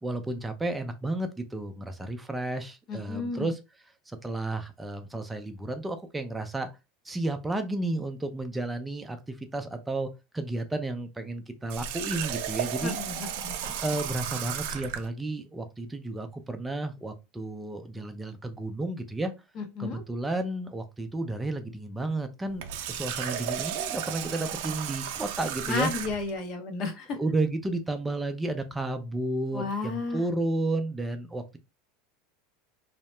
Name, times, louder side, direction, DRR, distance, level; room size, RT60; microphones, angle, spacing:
voice 1, 0.0-3.6 4.1-6.7 7.0-10.1 10.3-13.0 13.6-19.3 19.8-25.9 27.2-31.6, right 2 dB, 10° right, 0.5 m, -32 dB
voice 2, 2.9-3.5 12.8-13.5 19.6-20.0 25.7-27.2 29.5-30.2, left 3 dB, 45° left, 0.8 m, -32 dB
Water tap faucet, 11.7-15.1 22.5-26.3, right 9 dB, 70° right, 0.4 m, -34 dB
2.8 x 2.1 x 3.2 m
supercardioid pair, 125°, 0 cm